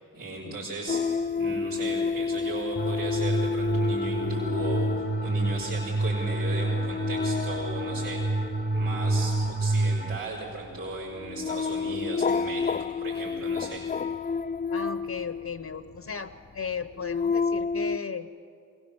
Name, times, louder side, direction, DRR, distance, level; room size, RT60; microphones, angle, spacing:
voice 1, 0.1-1.0 1.4-8.3 8.7-13.8, right 2 dB, 85° right, -9 dB, 4.5 m, -36 dB
sound 1, 0.9-16.0 16.6-18.0, left 5 dB, 25° left, 0.4 m, -31 dB
sound 2, 2.8-10.2, right 2 dB, 25° right, 0.9 m, -28 dB
voice 2, 14.7-18.3, left 6 dB, 55° left, 11 dB, 1.0 m, -36 dB
22.0 x 19.0 x 7.2 m, 2.4 s
supercardioid pair, 40°, 33 cm